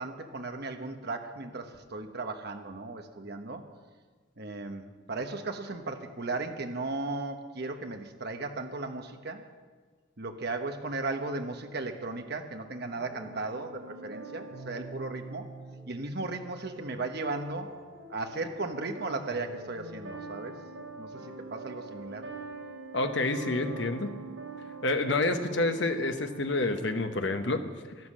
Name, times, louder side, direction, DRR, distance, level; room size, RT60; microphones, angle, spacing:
voice 1, 0.0-3.6 4.4-9.4 10.2-15.5 15.9-17.7 18.1-20.6 21.0-22.3, right 3 dB, 55° right, 6 dB, 1.1 m, -36 dB
sound 1, 12.8-27.4, right 2 dB, 85° right, 5.8 m, -44 dB
voice 2, 22.9-24.1 24.8-27.6, left 2 dB, 60° left, 7 dB, 1.0 m, -28 dB
12.0 x 11.5 x 7.4 m, 1.5 s
head